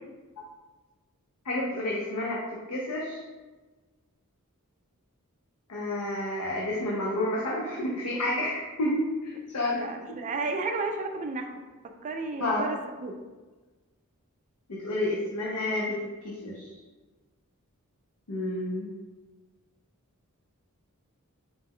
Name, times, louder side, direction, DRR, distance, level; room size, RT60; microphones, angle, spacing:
voice 1, 1.5-3.2 5.7-9.8 10.1-10.2 12.4-12.7 14.7-16.0 16.2-16.7 18.3-18.9, left 1 dB, 85° left, -4 dB, 0.6 m, -30 dB
voice 2, 9.7-11.6 11.8-13.2, right 3 dB, 35° right, 5 dB, 0.3 m, -33 dB
4.1 x 2.2 x 3.5 m, 1.3 s
head